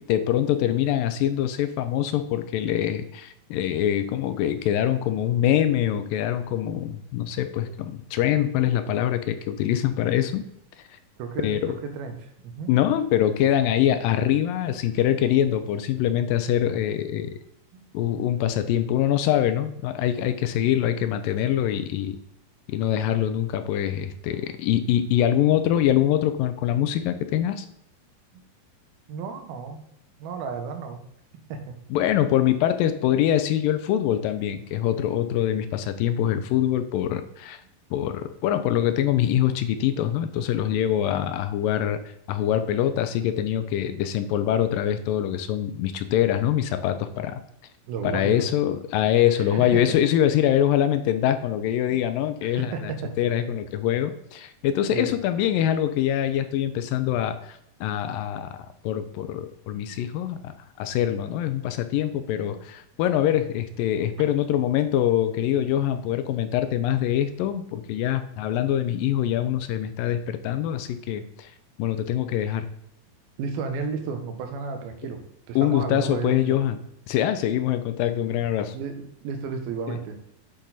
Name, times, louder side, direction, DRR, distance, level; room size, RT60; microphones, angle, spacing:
voice 1, 0.0-10.5 10.9-11.0 11.4-11.8 12.7-17.3 17.9-22.2 22.7-27.7 31.9-37.6 37.9-47.4 48.0-52.9 53.2-58.6 58.8-71.5 71.8-72.7 75.6-76.8 77.1-78.8 79.9-80.0, left 11 dB, 80° left, 10 dB, 2.2 m, -24 dB
voice 2, 11.2-12.7 17.7-17.9 28.3-28.4 29.1-29.8 30.2-31.0 31.5-31.7 46.9-47.0 47.9-48.5 49.4-49.8 51.9-52.0 52.4-53.1 54.9-55.1 67.7-67.9 73.4-75.2 75.5-76.6 78.7-80.2, right 5 dB, 85° right, 6 dB, 2.9 m, -33 dB
8.4 x 6.1 x 4.0 m, 0.76 s
omnidirectional pair, 4.2 m